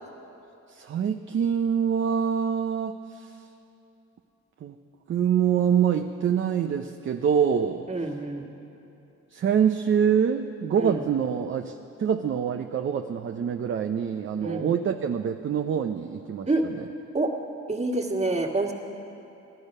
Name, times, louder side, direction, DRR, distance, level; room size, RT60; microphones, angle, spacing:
voice 1, 0.7-3.0 4.6-4.8 5.1-7.9 9.3-16.9, right 8 dB, 40° right, 5 dB, 0.6 m, -25 dB
voice 2, 7.9-8.4 10.8-11.0 14.4-14.7 16.5-16.6 17.1-17.3 17.7-18.7, right 2 dB, 20° right, 0 dB, 1.8 m, -27 dB
16.5 x 11.5 x 5.4 m, 2.8 s
cardioid pair, 90°, 30 cm